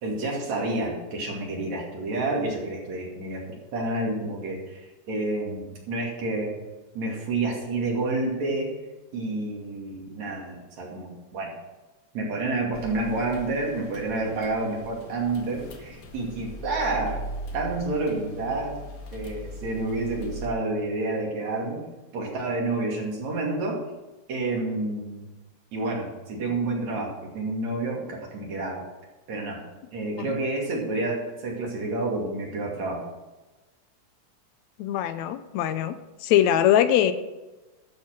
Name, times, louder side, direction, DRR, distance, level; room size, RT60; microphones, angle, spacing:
voice 1, 0.0-3.5 3.7-4.8 5.1-6.6 7.0-8.7 9.1-11.5 12.1-17.2 17.5-18.8 19.1-21.8 22.1-23.8 24.3-25.3 25.7-28.8 29.3-33.1, right 2 dB, 70° right, -1 dB, 3.7 m, -29 dB
sound 1, 12.7-20.5, right 1 dB, 45° left, 1.2 m, -39 dB
voice 2, 34.8-35.9 36.2-37.1, left 11 dB, 80° left, 11 dB, 1.9 m, -21 dB
12.5 x 7.3 x 6.0 m, 1.1 s
omnidirectional pair, 3.3 m